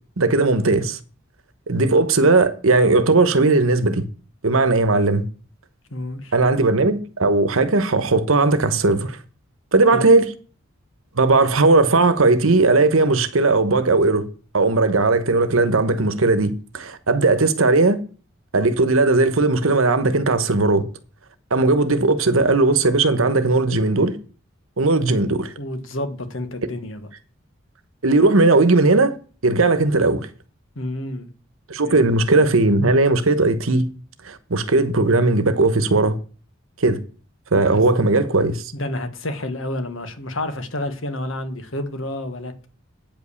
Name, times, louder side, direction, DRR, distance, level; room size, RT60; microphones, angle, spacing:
voice 1, 0.2-1.0 1.7-4.0 4.4-5.2 6.3-9.2 9.7-10.3 11.2-14.2 14.5-18.0 18.5-20.8 21.5-24.1 24.8-25.5 28.0-29.1 29.4-30.3 31.7-33.9 34.2-36.2 36.8-37.0 37.5-38.7, right 3 dB, 80° right, 1.1 m, -17 dB
voice 2, 5.9-6.3 9.9-10.1 25.6-27.1 30.7-31.3 31.8-32.1 37.7-37.8 38.7-42.7, left 1 dB, 70° left, 1.5 m, -29 dB
9.0 x 5.4 x 7.0 m
head